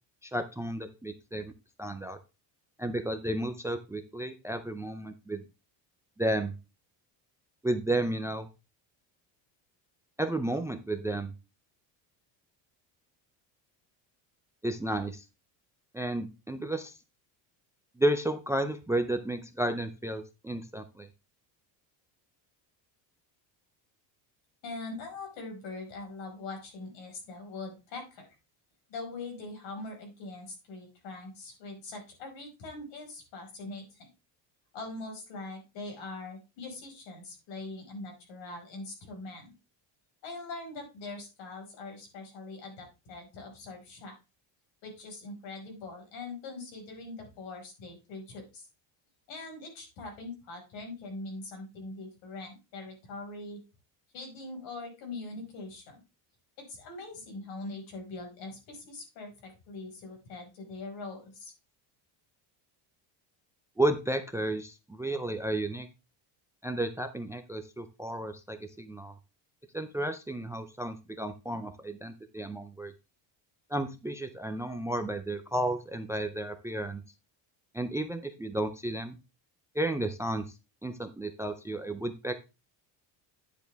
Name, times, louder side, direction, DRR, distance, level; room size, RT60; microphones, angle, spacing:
voice 1, 0.2-1.5 1.8-2.2 2.8-5.4 6.2-6.5 7.6-8.5 10.2-11.3 14.6-15.2 15.9-16.9 18.0-21.1 63.8-65.9 66.6-69.1 69.7-72.9 73.7-77.0 77.7-79.2 79.7-80.4 80.8-82.4, right 1 dB, 5° right, 10 dB, 0.4 m, -32 dB
voice 2, 24.6-28.3 28.9-34.1 34.7-39.5 40.2-44.2 44.8-48.7 49.3-53.6 54.1-56.0 56.6-61.5, left 2 dB, 75° left, 3 dB, 5.3 m, -42 dB
10.0 x 7.0 x 3.4 m, 0.28 s
cardioid pair, 150°, 45 cm